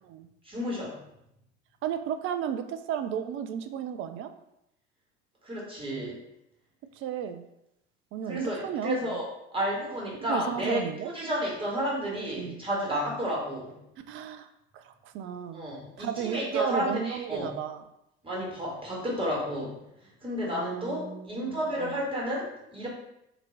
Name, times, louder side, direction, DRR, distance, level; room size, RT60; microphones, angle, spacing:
voice 1, 0.4-1.0 5.4-6.2 8.3-10.8 11.1-13.7 15.5-17.5 18.2-19.8 20.2-22.9, equal, 15° right, -3 dB, 1.8 m, -31 dB
voice 2, 1.8-4.3 6.9-7.4 8.1-9.2 10.3-11.1 12.3-12.6 14.1-15.7 16.0-17.8 20.4-22.0, right 9 dB, 35° right, 9 dB, 0.5 m, -34 dB
3.9 x 2.9 x 4.5 m, 0.83 s
figure-of-eight pair, 65°, 34 cm